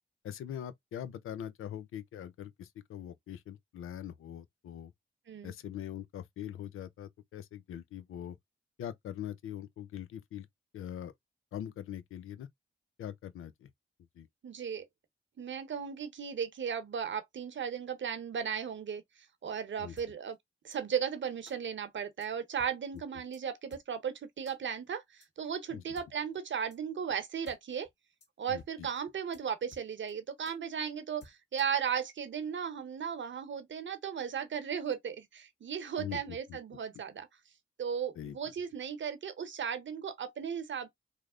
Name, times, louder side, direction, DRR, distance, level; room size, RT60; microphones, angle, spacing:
voice 1, 0.2-4.9 5.4-8.4 8.8-10.5 10.7-11.1 11.5-12.5 13.0-13.7 14.1-14.3 19.8-20.0 23.1-23.2 25.7-25.8 28.5-28.9 36.0-36.6 38.1-38.4, left 10 dB, 85° left, 0.5 m, -42 dB
voice 2, 14.4-14.8 15.4-19.0 19.4-20.4 20.6-27.9 28.4-37.3 37.8-40.9, right 7 dB, 65° right, 0.9 m, -36 dB
sound 1, 20.0-20.1 20.7-20.8 21.4-21.6 22.2-22.3 22.6-22.7 23.0-23.1 23.3-23.4 23.7-23.8 24.4-24.6 25.2-25.3 25.9-26.1 26.7-26.8 27.1-27.2 27.4-27.6 27.8-27.9 28.2-28.3 28.6-28.7 29.0-29.1 29.3-29.4 29.7-30.1 30.4-30.6 31.2-31.8, left 2 dB, 55° left, 1.6 m, -55 dB
3.2 x 2.1 x 3.6 m
supercardioid pair, 45°, 21 cm